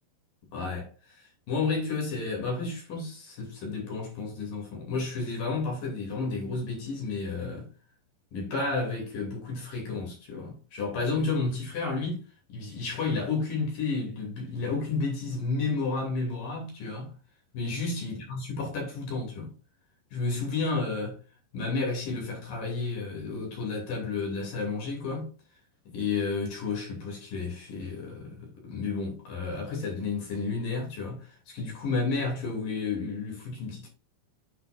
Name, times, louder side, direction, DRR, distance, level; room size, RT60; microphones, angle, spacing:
voice 1, 0.5-7.7 8.3-12.2 12.5-17.1 17.5-19.5 20.1-21.2 21.5-25.3 25.9-33.9, left 4 dB, 50° left, 3.8 m, -31 dB
8.5 x 5.7 x 2.5 m
omnidirectional pair, 5.4 m